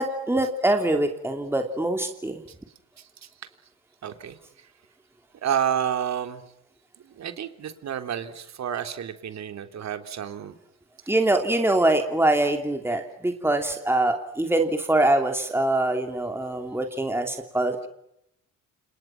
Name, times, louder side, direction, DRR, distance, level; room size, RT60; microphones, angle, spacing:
voice 1, 0.0-2.4 11.1-17.9, right 1 dB, 10° right, 4 dB, 3.1 m, -24 dB
voice 2, 4.0-4.4 5.4-6.4 7.0-10.5, right 9 dB, 60° right, 8 dB, 3.5 m, -30 dB
29.5 x 28.5 x 6.0 m, 0.79 s
cardioid pair, 90°, 30 cm